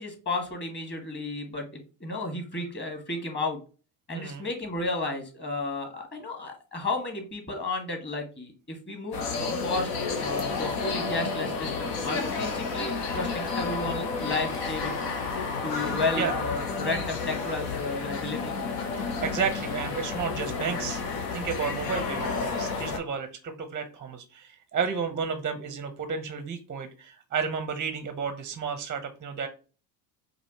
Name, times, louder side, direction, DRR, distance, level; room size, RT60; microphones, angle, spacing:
voice 1, 0.0-3.6 4.1-9.9 10.2-15.0 15.6-18.6, left 2 dB, 20° left, 3 dB, 1.5 m, -33 dB
voice 2, 4.1-4.5 15.7-16.3 19.0-21.0 21.3-29.5, right 6 dB, 20° right, 8 dB, 0.5 m, -32 dB
sound 1, 9.1-23.0, left 4 dB, 75° left, 1.0 m, -31 dB
4.9 x 2.5 x 2.8 m, 0.35 s
supercardioid pair, 90°, 49 cm